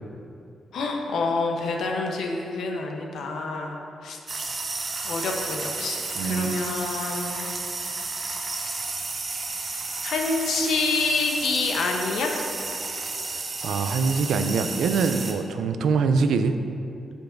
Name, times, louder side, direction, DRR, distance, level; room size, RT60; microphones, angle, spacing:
voice 1, 0.7-4.2 5.0-7.5 10.0-12.4, left 3 dB, 80° left, 2 dB, 0.8 m, -27 dB
sound 1, 4.3-15.3, right 3 dB, 40° right, 0.7 m, -32 dB
voice 2, 6.2-6.6 13.3-16.6, right 5 dB, 85° right, 8 dB, 0.4 m, -24 dB
10.5 x 5.2 x 2.6 m, 2.5 s
cardioid pair, 115°, 0 cm